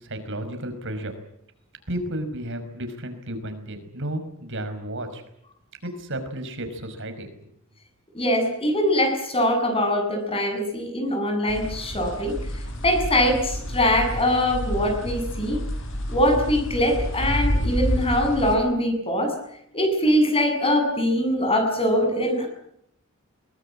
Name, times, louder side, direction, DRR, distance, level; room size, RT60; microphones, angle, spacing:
voice 1, 0.0-1.1 1.9-5.2 6.0-7.3, right 1 dB, 60° right, 8 dB, 5.2 m, -32 dB
voice 2, 8.1-12.4 12.8-15.6 16.1-19.4 19.7-22.5, left 1 dB, 25° left, 5 dB, 7.7 m, -22 dB
sound 1, 11.5-18.6, equal, 60° left, 5.8 m, -29 dB
23.0 x 21.0 x 8.8 m, 0.74 s
head